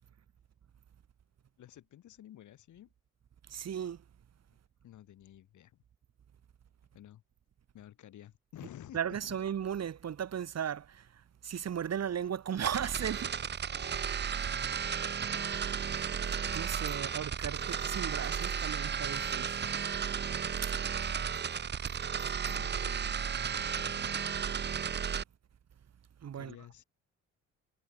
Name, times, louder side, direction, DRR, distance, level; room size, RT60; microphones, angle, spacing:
voice 1, 1.6-2.9 4.8-5.8 6.9-7.2 7.7-9.4 14.9-15.2 16.8-17.2 22.4-24.3 26.4-26.8, left 12 dB, 75° left, 7.2 m, -52 dB
voice 2, 3.5-4.0 8.9-13.3 14.4-14.5 15.9-16.0 16.5-19.7 20.6-20.7 26.2-26.5, right 8 dB, 55° right, 6.0 m, -36 dB
sound 1, 12.6-25.2, right 7 dB, 35° right, 0.8 m, -34 dB
cardioid pair, 90°, 30 cm